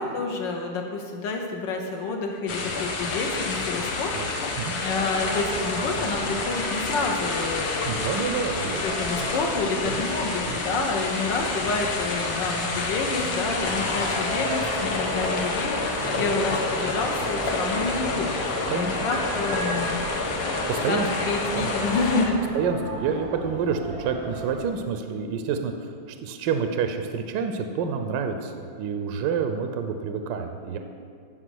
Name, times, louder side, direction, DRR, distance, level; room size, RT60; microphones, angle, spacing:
voice 1, 0.0-4.5 4.8-8.2 8.7-20.0 20.9-22.6, left 3 dB, 65° left, 2 dB, 1.4 m, -29 dB
sound 1, 2.5-22.3, left 3 dB, 90° left, 1.9 m, -29 dB
sound 2, 4.8-24.7, right 2 dB, 35° right, 0.5 m, -37 dB
voice 2, 7.9-8.9 9.2-9.3 9.8-10.1 10.5-10.6 16.1-16.4 18.7-18.9 20.7-21.1 21.5-21.7 22.5-30.8, right 6 dB, 70° right, 6 dB, 1.1 m, -28 dB
9.9 x 5.0 x 6.3 m, 2.3 s
omnidirectional pair, 2.3 m